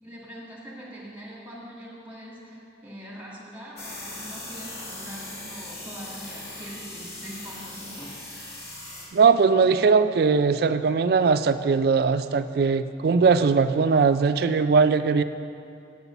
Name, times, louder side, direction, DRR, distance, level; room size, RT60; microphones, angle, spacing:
voice 1, 0.0-8.2, equal, 10° right, -5 dB, 1.8 m, -42 dB
sound 1, 3.8-9.0, left 1 dB, 60° left, 2.1 m, -39 dB
voice 2, 9.1-15.2, right 5 dB, 55° right, 11 dB, 0.3 m, -20 dB
8.0 x 5.4 x 7.0 m, 2.6 s
head